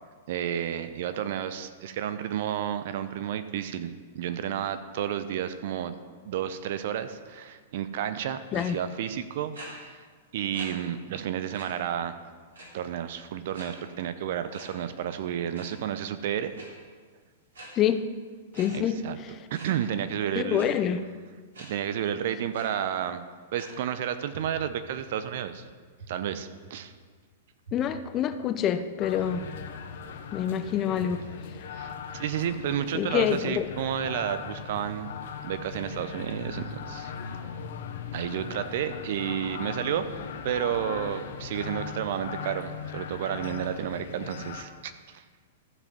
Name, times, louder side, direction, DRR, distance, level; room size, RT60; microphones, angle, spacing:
voice 1, 0.3-5.9 6.2-10.0 10.3-12.1 12.7-16.5 18.7-19.2 19.5-20.7 21.6-23.2 23.5-25.6 26.1-26.9 31.7-35.1 35.4-37.1 38.1-40.1 40.4-45.2, right 10 dB, 55° right, 11 dB, 0.7 m, -31 dB
sound 1, 8.5-8.7 9.5-9.7 10.5-10.7 11.1-11.2 11.5-11.7 12.5-12.9 13.5-13.7 14.5-14.6 15.4-15.7 16.5-16.7 17.5-17.7 18.5-18.7 19.5-19.7 20.5-20.7 21.5-21.7 22.1-22.2 22.5-22.6 23.5-23.7, right 2 dB, 75° right, 3.6 m, -44 dB
voice 2, 17.8-18.1 18.6-19.3 20.3-21.0 27.7-29.5 30.3-31.2 32.9-33.7, left 9 dB, 30° left, 11 dB, 0.6 m, -26 dB
sound 2, 24.3-24.4 25.0-25.1 26.0-26.1 26.6-26.7 27.6-27.7 28.3-28.4 29.3-29.4 30.0-30.1 31.0-31.1 31.6-31.7, right 5 dB, 90° right, 3.4 m, -45 dB
sound 3, 29.0-44.6, left 7 dB, 60° left, 0.8 m, -39 dB
14.5 x 5.1 x 5.3 m, 1.5 s
figure-of-eight pair, 105°, 0 cm